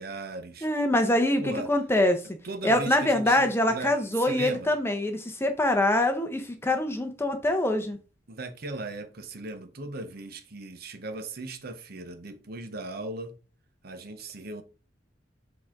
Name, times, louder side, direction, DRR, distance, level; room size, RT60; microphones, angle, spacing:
voice 1, 0.0-0.7 1.4-1.7 2.4-4.7 8.3-13.3 13.8-14.6, right 2 dB, 55° right, 0.9 m, -37 dB
voice 2, 0.6-2.2 2.6-8.0, left 1 dB, 15° left, 0.8 m, -24 dB
7.5 x 4.0 x 3.7 m
head